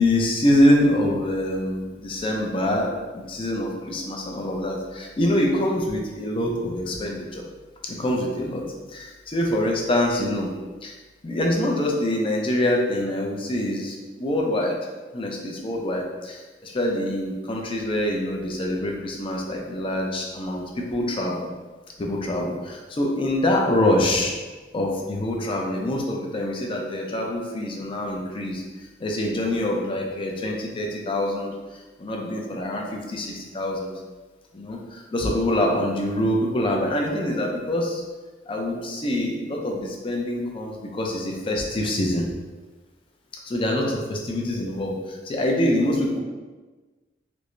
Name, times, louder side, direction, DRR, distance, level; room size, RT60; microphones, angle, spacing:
voice 1, 0.0-7.4 7.8-8.6 8.9-10.5 10.8-10.9 11.2-14.8 15.1-21.5 22.0-24.4 24.7-28.6 29.0-31.5 32.0-33.9 34.5-38.0 38.5-42.3 43.5-46.2, left 1 dB, 30° left, 0 dB, 0.5 m, -25 dB
4.5 x 2.1 x 2.5 m, 1.3 s
head